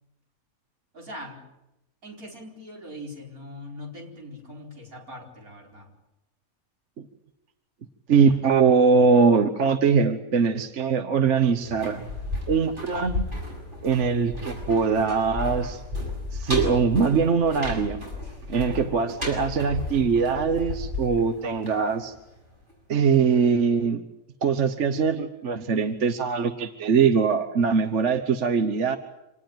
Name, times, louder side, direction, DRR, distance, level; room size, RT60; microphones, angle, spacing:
voice 1, 0.9-1.4 2.0-5.9, left 1 dB, 75° right, 1 dB, 5.1 m, -41 dB
voice 2, 8.1-12.0 12.5-13.3 13.8-15.8 16.3-18.0 18.5-22.1 22.9-24.0 24.4-29.0, right 5 dB, 55° right, 9 dB, 1.4 m, -22 dB
sound 1, 11.6-22.4 22.7-22.8, left 2 dB, 35° right, 7.0 m, -33 dB
26.5 x 18.5 x 9.1 m, 0.94 s
omnidirectional pair, 1.5 m